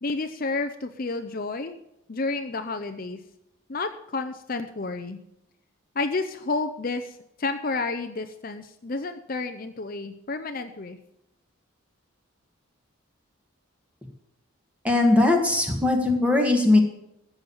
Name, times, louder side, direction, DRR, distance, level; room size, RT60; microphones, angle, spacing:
voice 1, 0.0-1.8 2.1-3.2 3.7-5.2 5.9-11.0, left 3 dB, 40° left, 8 dB, 0.6 m, -30 dB
voice 2, 14.8-16.8, left 2 dB, 5° right, 3 dB, 1.7 m, -20 dB
14.5 x 7.2 x 7.0 m, 0.83 s
head